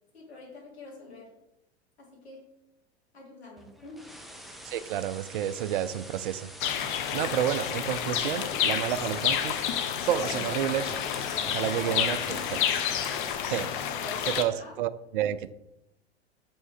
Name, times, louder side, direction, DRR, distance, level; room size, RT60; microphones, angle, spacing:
voice 1, 0.1-1.4 2.0-2.5 3.1-4.1 10.0-10.4 11.3-12.3 13.7-14.8, left 2 dB, 70° left, -3 dB, 2.7 m, -44 dB
sound 1, 3.6-13.4, equal, ahead, 0.5 m, -46 dB
voice 2, 4.6-6.5 7.1-9.6 10.1-10.9 11.5-12.6 13.5-13.7 14.4-15.5, right 11 dB, 50° right, 14 dB, 0.5 m, -30 dB
sound 2, 6.6-14.4, left 9 dB, 50° left, 0.7 m, -30 dB
6.2 x 5.1 x 3.8 m, 0.88 s
figure-of-eight pair, 90°, 33 cm